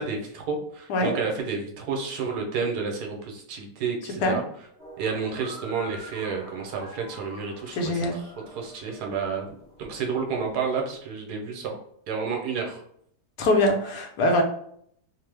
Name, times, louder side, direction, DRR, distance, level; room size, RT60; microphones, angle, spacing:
voice 1, 0.0-4.4 5.0-8.2 8.5-9.5 9.8-11.8 12.1-12.8, right 5 dB, 80° right, 1 dB, 1.2 m, -30 dB
sound 1, 4.8-11.0, equal, 30° right, 1.2 m, -46 dB
voice 2, 7.7-8.2 13.4-14.4, left 1 dB, 80° left, 3 dB, 1.2 m, -22 dB
3.0 x 2.0 x 3.2 m, 0.66 s
omnidirectional pair, 1.7 m